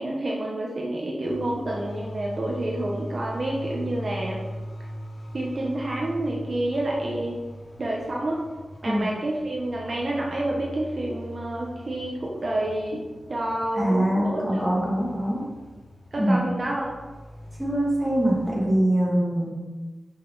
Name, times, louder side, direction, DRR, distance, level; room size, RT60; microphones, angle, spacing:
voice 1, 0.0-4.4 5.3-7.4 7.8-8.5 8.8-13.0 13.3-14.6 16.1-17.0, right 1 dB, 45° right, -2 dB, 1.4 m, -28 dB
sound 1, 1.2-18.8, left 1 dB, 45° left, 3.1 m, -40 dB
voice 2, 13.8-15.4 16.2-16.4 17.6-19.5, right 1 dB, 5° right, -5 dB, 2.7 m, -23 dB
11.5 x 6.3 x 4.2 m, 1.3 s
wide cardioid pair, 150°, 0 cm